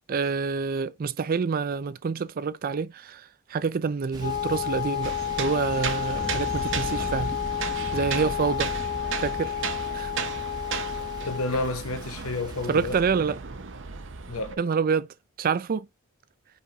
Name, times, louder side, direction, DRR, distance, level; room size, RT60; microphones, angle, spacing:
voice 1, 0.1-7.3 7.9-8.7 9.2-9.5 9.9-10.1 12.7-13.4 14.6-15.1 15.4-15.9, right 5 dB, 40° right, 0.4 m, -27 dB
Thunder, 4.1-13.0, right 1 dB, 20° right, 1.0 m, -39 dB
Wind instrument woodwind instrument, 4.2-11.6, left 10 dB, 45° left, 0.5 m, -31 dB
sound 1, 5.0-14.5, right 6 dB, 55° right, 0.8 m, -35 dB
voice 2, 11.3-13.0 14.3-14.6, left 2 dB, 70° left, 1.0 m, -30 dB
5.5 x 4.4 x 3.9 m
head